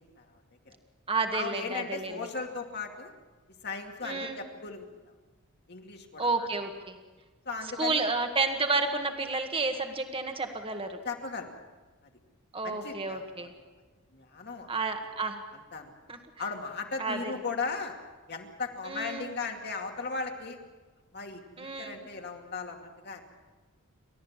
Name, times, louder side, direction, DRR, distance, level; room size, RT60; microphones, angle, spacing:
voice 1, 0.2-0.7 1.3-3.1 3.6-5.1 5.7-6.5 7.4-8.1 11.0-11.5 12.6-13.5 14.1-14.8 15.5-15.9 16.4-18.0 18.3-20.6 21.1-23.2, left 4 dB, 50° left, 2 dB, 2.5 m, -37 dB
voice 2, 1.1-2.1 4.0-4.4 6.2-7.0 7.8-11.0 12.5-13.5 14.7-15.4 16.1-16.2 17.0-17.3 18.9-19.3 21.6-22.0, right 3 dB, 25° right, 5 dB, 1.8 m, -31 dB
29.5 x 13.5 x 7.4 m, 1.3 s
head